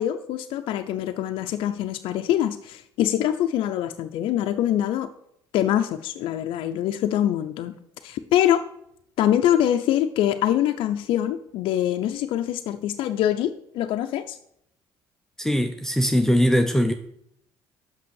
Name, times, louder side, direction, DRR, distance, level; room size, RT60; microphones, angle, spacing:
voice 1, 0.0-5.1 5.5-7.7 8.0-8.6 9.2-14.4, left 11 dB, 70° left, 6 dB, 0.5 m, -24 dB
voice 2, 15.4-16.9, equal, 5° left, 6 dB, 0.6 m, -21 dB
6.1 x 5.9 x 6.4 m, 0.73 s
supercardioid pair, 85°, 9 cm